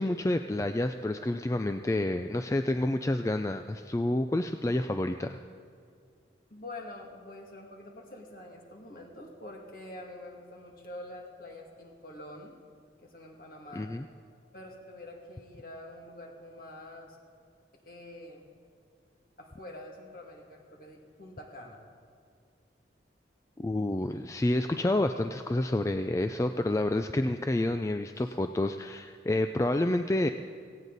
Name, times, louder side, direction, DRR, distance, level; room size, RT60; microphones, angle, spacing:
voice 1, 0.0-5.4 13.7-14.0 23.6-30.3, left 1 dB, 15° left, 7 dB, 0.3 m, -29 dB
voice 2, 6.5-12.5 13.0-13.9 14.5-17.2 17.9-18.5 19.4-21.8 28.2-28.3, left 1 dB, 50° left, 0 dB, 2.2 m, -46 dB
17.5 x 17.0 x 4.0 m, 2.2 s
head